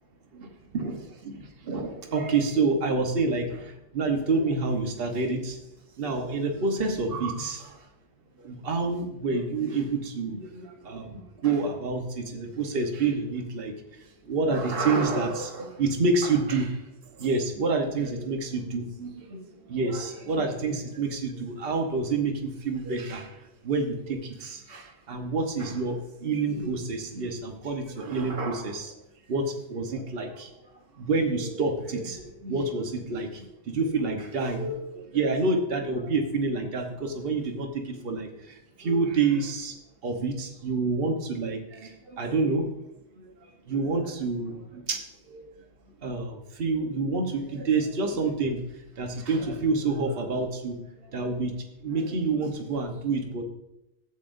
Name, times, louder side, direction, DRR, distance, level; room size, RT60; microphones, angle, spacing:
voice 1, 0.3-5.6 6.0-7.8 8.4-28.9 29.3-30.5 31.0-39.7 40.0-42.9 43.2-43.3 43.7-45.5 46.0-48.6 49.0-51.5 51.8-53.4, right 3 dB, 50° right, 3 dB, 1.2 m, -28 dB
12.5 x 8.6 x 2.6 m, 0.89 s
omnidirectional pair, 1.3 m